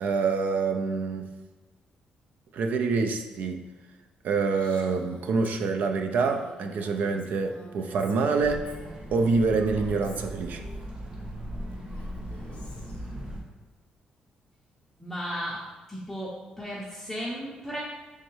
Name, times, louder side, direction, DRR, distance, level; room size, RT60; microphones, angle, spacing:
voice 1, 0.0-1.3 2.5-3.7 4.2-8.8 9.1-10.6, right 4 dB, 70° right, 6 dB, 0.3 m, -26 dB
Female speech woman speaking, 4.5-10.9 11.7-13.1, left 2 dB, 55° left, 0.6 m, -49 dB
sound 1, 8.4-13.4, equal, 40° right, 0.8 m, -38 dB
voice 2, 15.0-15.6 15.9-17.8, equal, 5° left, -6 dB, 0.5 m, -35 dB
3.4 x 3.1 x 3.1 m, 1.2 s
cardioid pair, 105°, 3 cm